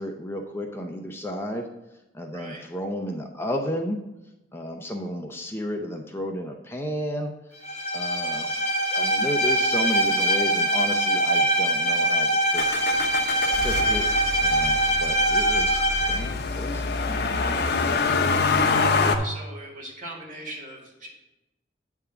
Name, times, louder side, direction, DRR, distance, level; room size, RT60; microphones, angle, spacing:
voice 1, 0.0-1.7 2.1-4.0 4.5-7.3 7.9-12.7 13.5-14.1 14.4-17.0 18.1-18.9, equal, 15° left, 3 dB, 0.6 m, -33 dB
voice 2, 2.3-2.6 19.2-21.1, right 1 dB, 50° right, -3 dB, 2.3 m, -39 dB
Bowed string instrument, 7.6-16.3, right 1 dB, 40° left, 0.9 m, -23 dB
Motor vehicle (road), 12.6-19.2, left 4 dB, 65° left, 0.7 m, -26 dB
9.0 x 3.6 x 6.8 m, 0.97 s
head